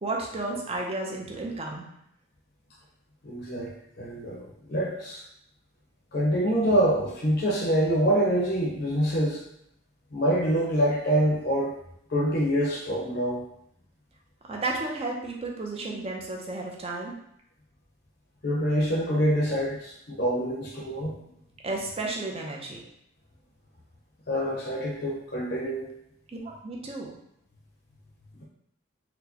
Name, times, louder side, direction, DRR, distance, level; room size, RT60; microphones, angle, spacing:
voice 1, 0.0-1.8 14.5-17.1 21.6-22.8 26.3-27.1, right 2 dB, 30° right, -1 dB, 0.6 m, -32 dB
voice 2, 3.2-3.7 4.0-5.2 6.1-9.4 10.1-11.8 12.1-13.4 18.4-21.1 24.3-25.9, equal, 55° left, -4 dB, 0.7 m, -25 dB
4.2 x 2.1 x 2.8 m, 0.75 s
head